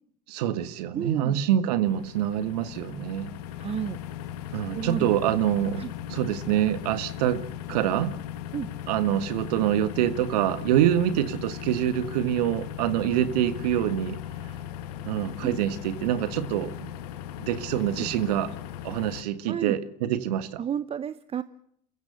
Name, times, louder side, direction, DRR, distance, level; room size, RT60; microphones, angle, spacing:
voice 1, 0.3-3.3 4.5-5.8 6.1-7.4 7.7-8.1 8.9-14.2 15.0-16.9 17.4-18.5 18.8-20.6, right 11 dB, 70° right, 11 dB, 1.7 m, -25 dB
voice 2, 0.9-1.4 3.6-4.0 4.7-5.1 5.8-5.9 8.5-8.7 15.4-15.6 18.0-18.1 19.5-19.8 20.6-21.4, right 8 dB, 30° right, 14 dB, 0.8 m, -31 dB
sound 1, 1.8-19.2, left 11 dB, 70° left, 1.7 m, -38 dB
30.0 x 15.5 x 6.7 m, 0.72 s
hypercardioid pair, 80°, 21 cm